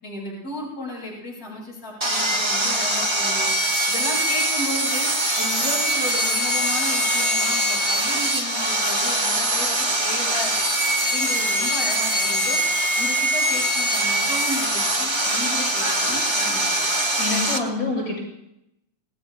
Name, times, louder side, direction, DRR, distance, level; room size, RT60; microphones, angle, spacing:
voice 1, 0.0-3.5 3.9-5.1 5.4-9.7 10.0-10.5 11.1-12.6 13.0-16.6, left 1 dB, 30° left, -6 dB, 8.0 m, -34 dB
Sawing, 2.0-17.6, right 1 dB, 15° right, 0.9 m, -22 dB
voice 2, 17.2-18.2, left 3 dB, 50° left, -6 dB, 9.0 m, -26 dB
29.0 x 19.0 x 2.3 m, 0.80 s
omnidirectional pair, 3.3 m